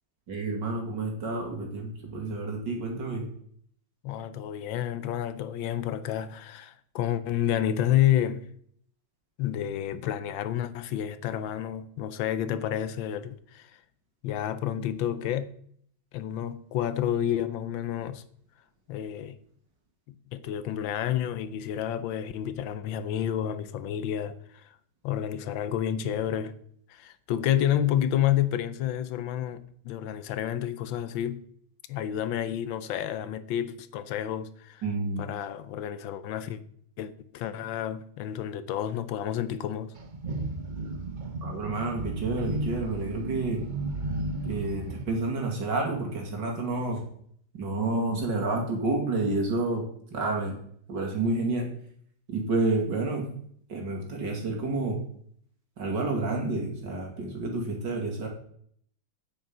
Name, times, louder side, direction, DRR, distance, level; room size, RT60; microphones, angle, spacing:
voice 1, 0.3-3.2 34.8-35.3 41.4-43.6 44.4-47.0 47.5-49.8 50.1-50.6 50.9-51.7 52.3-53.3 53.7-55.0 55.8-58.3, right 2 dB, 65° right, 3.1 m, -29 dB
voice 2, 4.0-8.5 9.4-13.8 14.2-15.6 16.1-18.2 18.9-19.4 20.1-24.8 25.0-26.5 26.9-31.4 31.9-34.8 35.2-36.6 37.0-39.9, left 11 dB, 80° left, 1.5 m, -30 dB
sound 1, 40.0-45.1, right 2 dB, 40° right, 0.7 m, -34 dB
8.9 x 8.1 x 5.5 m
omnidirectional pair, 2.1 m